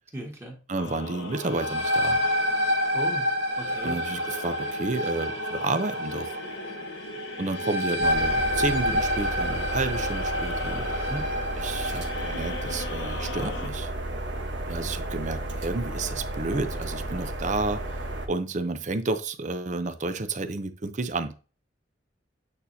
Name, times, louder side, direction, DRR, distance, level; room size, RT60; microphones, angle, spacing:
voice 1, 0.1-0.6 2.9-4.0 11.1-11.2, equal, 15° right, 0 dB, 1.6 m, -37 dB
voice 2, 0.7-2.2 3.8-6.4 7.4-10.9 11.6-13.9 14.7-17.8 18.3-21.3, right 3 dB, 45° right, 10 dB, 0.6 m, -31 dB
sound 1, 0.8-13.7, left 2 dB, 70° left, 1.0 m, -38 dB
sound 2, 1.3-12.8, equal, 65° right, 1.2 m, -28 dB
sound 3, 8.0-18.3, right 1 dB, 85° right, 1.1 m, -33 dB
8.3 x 4.2 x 2.7 m, 0.35 s
head